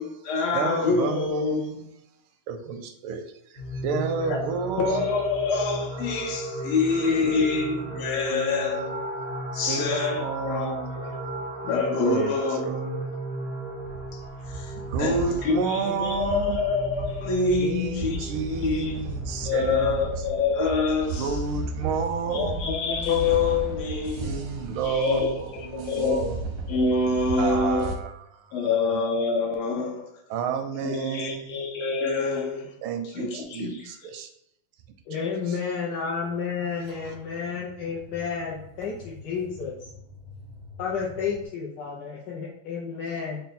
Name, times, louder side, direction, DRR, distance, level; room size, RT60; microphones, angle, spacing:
voice 1, 0.0-1.7 4.2-4.5 4.8-8.9 9.6-13.1 14.1-19.0 19.4-21.4 22.3-24.3 24.8-26.4 26.7-28.0 28.5-30.1 30.8-32.7 33.0-34.1, left 4 dB, 85° left, 1 dB, 1.6 m, -26 dB
voice 2, 0.5-1.9 2.5-5.1 7.1-7.7 8.3-8.9 9.5-10.9 11.2-11.3 12.0-12.3 12.7-13.3 14.9-16.6 17.6-20.0 21.2-22.9 24.2-26.4 27.4-28.6 30.3-31.7 32.8-34.3 35.5-35.6, right 5 dB, 85° right, 6 dB, 1.4 m, -31 dB
sound 1, 3.6-19.9, right 1 dB, 45° left, 0.5 m, -36 dB
sound 2, 13.9-27.9, right 2 dB, 65° right, 0.9 m, -35 dB
voice 3, 35.1-39.7 40.8-43.4, left 6 dB, 70° left, -5 dB, 1.1 m, -31 dB
sound 3, 36.2-41.5, left 2 dB, 30° right, 0.4 m, -47 dB
4.2 x 2.2 x 4.0 m, 0.79 s
omnidirectional pair, 2.3 m